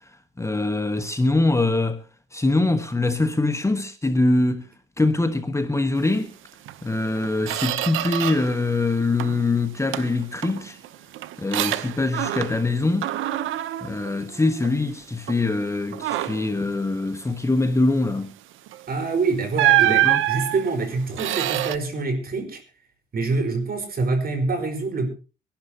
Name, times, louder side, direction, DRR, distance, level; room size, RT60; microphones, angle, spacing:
voice 1, 0.4-2.0 2.3-4.7 5.0-6.3 6.8-10.8 11.4-13.1 13.8-18.3 19.8-20.2, left 2 dB, 15° left, 1.3 m, -23 dB
Squeak, 6.6-6.8 7.2-8.6 8.9-9.5 9.9-12.7 13.0-14.8 15.3-15.5 15.9-16.5 18.7-18.8 19.5-21.8, right 14 dB, 85° right, 0.9 m, -25 dB
voice 2, 18.9-22.6 23.1-25.1, right 3 dB, 50° right, 4.9 m, -25 dB
24.0 x 11.5 x 2.9 m
cardioid pair, 90°, 20 cm